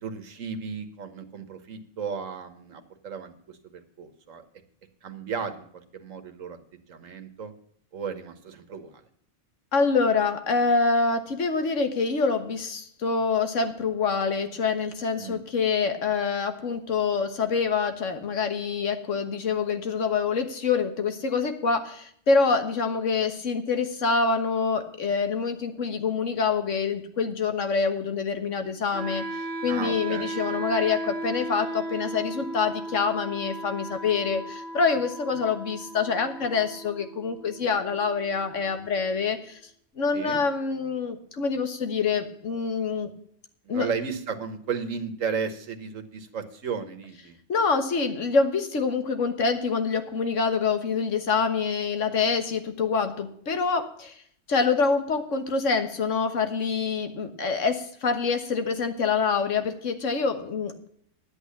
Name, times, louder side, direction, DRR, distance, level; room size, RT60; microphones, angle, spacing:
voice 1, 0.0-4.4 5.0-7.5 7.9-9.0 15.2-15.4 29.7-30.6 40.1-40.4 43.6-47.4, right 6 dB, 85° right, 8 dB, 1.6 m, -35 dB
voice 2, 9.7-39.6 40.0-43.1 43.7-43.9 47.5-54.2 54.5-60.9, left 5 dB, 75° left, 8 dB, 1.7 m, -26 dB
Wind instrument woodwind instrument, 28.9-38.9, right 2 dB, 55° right, 1.5 m, -36 dB
11.0 x 8.5 x 7.1 m, 0.64 s
omnidirectional pair, 1.3 m